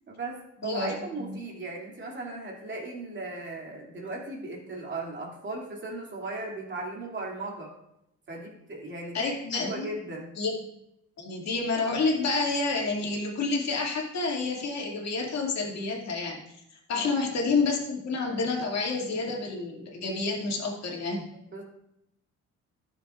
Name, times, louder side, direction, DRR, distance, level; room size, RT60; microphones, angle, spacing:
voice 1, 0.1-7.7 8.3-10.4 16.9-17.1 21.3-21.6, right 2 dB, 40° right, -2 dB, 2.6 m, -37 dB
voice 2, 0.6-0.9 1.2-1.4 9.1-9.9 10.4-10.5 11.2-16.4 16.9-21.2, left 3 dB, 60° left, -1 dB, 2.3 m, -29 dB
13.0 x 6.9 x 2.5 m, 0.79 s
cardioid pair, 90°, 30 cm